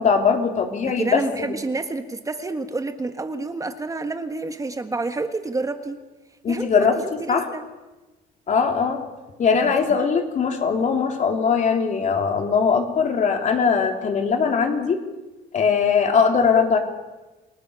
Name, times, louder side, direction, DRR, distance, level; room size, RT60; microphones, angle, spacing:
voice 1, 0.0-1.5 6.4-7.0 7.3-7.5 8.5-9.0 9.4-15.0 15.5-16.8, left 6 dB, 45° left, 4 dB, 3.7 m, -20 dB
voice 2, 0.8-6.0 6.5-7.6 9.6-9.7, right 3 dB, 20° right, 8 dB, 1.6 m, -29 dB
29.5 x 19.0 x 7.1 m, 1.1 s
cardioid pair, 110°, 17 cm